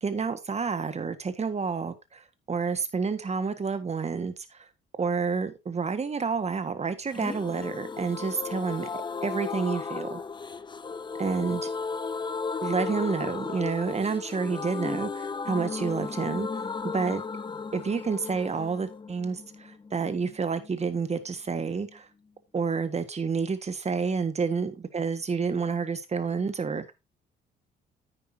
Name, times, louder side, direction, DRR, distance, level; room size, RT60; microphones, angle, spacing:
voice 1, 0.0-2.2 2.5-4.3 5.0-8.9 9.2-10.2 11.2-11.7 12.6-16.5 16.8-17.2 17.7-22.1 22.5-26.9, right 5 dB, 35° right, 1.6 m, -29 dB
sound 1, 7.1-20.7 21.0-21.1 21.3-21.4, left 5 dB, 25° left, 0.6 m, -35 dB
10.0 x 9.1 x 2.7 m
cardioid pair, 90°, 20 cm